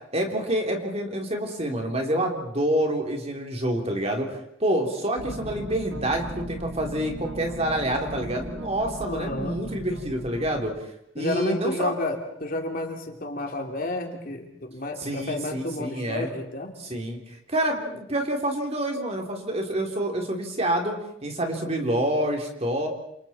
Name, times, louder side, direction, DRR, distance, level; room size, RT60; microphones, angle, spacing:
voice 1, 0.1-10.7 11.1-11.9 15.0-16.3 16.8-22.9, right 1 dB, 30° right, 2 dB, 3.2 m, -27 dB
sound 1, 5.2-10.6, right 1 dB, 75° right, 1.8 m, -37 dB
voice 2, 9.1-9.6 11.2-16.7, left 1 dB, 45° left, 2 dB, 3.1 m, -31 dB
28.0 x 28.0 x 4.3 m, 0.76 s
head